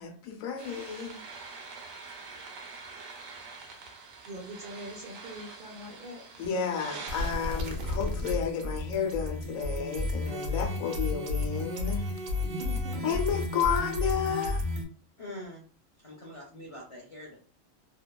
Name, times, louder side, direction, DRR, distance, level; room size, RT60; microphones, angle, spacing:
voice 1, 0.0-1.6 6.4-12.1 13.0-14.7, left 7 dB, 90° left, 1.0 m, -32 dB
sound 1, 0.6-14.8, left 1 dB, 85° right, 1.0 m, -35 dB
voice 2, 4.3-6.2 12.4-13.2, right 1 dB, 55° right, 0.5 m, -42 dB
voice 3, 15.2-15.6 16.0-17.4, left 1 dB, 55° left, 0.3 m, -44 dB
2.8 x 2.2 x 2.2 m
omnidirectional pair, 1.3 m